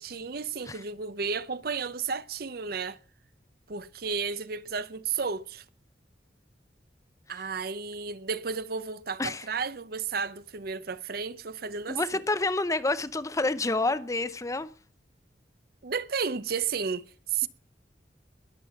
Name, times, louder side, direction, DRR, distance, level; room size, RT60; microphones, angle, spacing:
voice 1, 0.0-3.0 3.7-5.6 7.3-12.2 15.8-17.5, right 5 dB, 60° right, 0.7 m, -33 dB
voice 2, 11.9-14.7, left 2 dB, 20° left, 0.7 m, -28 dB
20.5 x 7.5 x 5.8 m
head